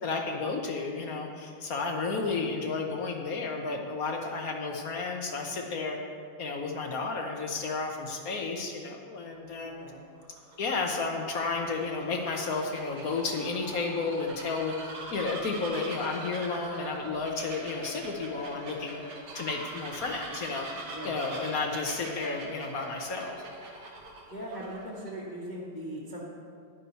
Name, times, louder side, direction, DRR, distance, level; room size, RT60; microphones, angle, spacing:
voice 1, 0.0-6.0 6.4-9.9 10.6-19.1 19.3-20.7 21.0-23.4, left 4 dB, 55° left, 2 dB, 1.0 m, -32 dB
voice 2, 9.6-10.0 20.9-21.2 24.3-26.2, right 1 dB, 25° left, -7 dB, 1.3 m, -40 dB
Bird vocalization bird call bird song, 10.1-25.1, right 1 dB, 70° right, 2.3 m, -42 dB
11.0 x 10.5 x 4.2 m, 2.3 s
omnidirectional pair, 2.3 m